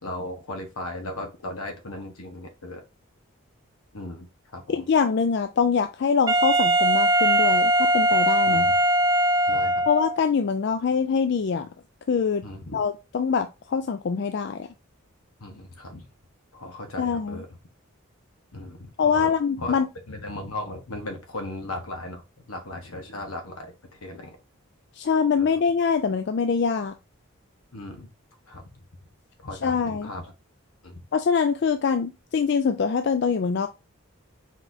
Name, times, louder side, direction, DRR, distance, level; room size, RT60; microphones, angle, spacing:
voice 1, 0.0-2.8 3.9-4.3 4.5-4.8 8.5-8.8 9.5-9.9 12.4-12.8 15.4-16.1 16.5-17.5 18.5-19.3 19.6-19.7 20.1-24.4 25.4-25.6 27.7-28.1 28.5-28.7 29.4-30.3 30.8-31.0, left 1 dB, 85° left, 4 dB, 1.2 m, -37 dB
voice 2, 4.7-8.7 9.9-11.7 12.1-12.4 12.7-14.7 17.0-17.4 19.0-19.9 25.0-26.9 29.6-30.1 31.1-33.7, left 6 dB, 50° left, 8 dB, 0.3 m, -24 dB
Wind instrument woodwind instrument, 6.3-10.2, right 1 dB, 15° right, 0.4 m, -20 dB
4.4 x 4.0 x 2.7 m, 0.26 s
head